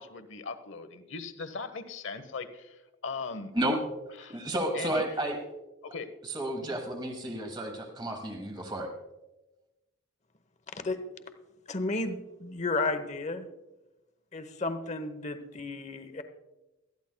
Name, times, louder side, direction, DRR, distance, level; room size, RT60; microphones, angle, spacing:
voice 1, 0.0-3.5 4.2-4.4 4.7-5.0 5.8-6.2, left 4 dB, 70° left, 11 dB, 0.9 m, -39 dB
voice 2, 4.3-5.4 6.2-8.9, right 1 dB, 20° right, 3 dB, 1.2 m, -31 dB
voice 3, 11.7-13.5 14.3-16.2, left 3 dB, 35° left, 9 dB, 0.8 m, -33 dB
20.0 x 13.5 x 2.2 m, 1.0 s
head